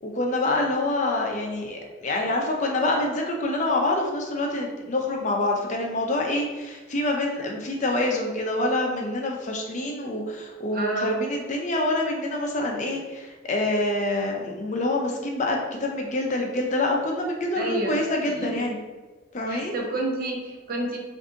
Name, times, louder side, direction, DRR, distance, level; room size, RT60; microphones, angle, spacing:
voice 1, 0.0-18.8 19.3-19.7, left 2 dB, 35° left, 1 dB, 0.5 m, -26 dB
voice 2, 10.7-11.1 17.6-18.5 19.5-21.0, right 1 dB, 45° right, 0 dB, 0.7 m, -29 dB
4.9 x 2.6 x 2.6 m, 1.3 s
head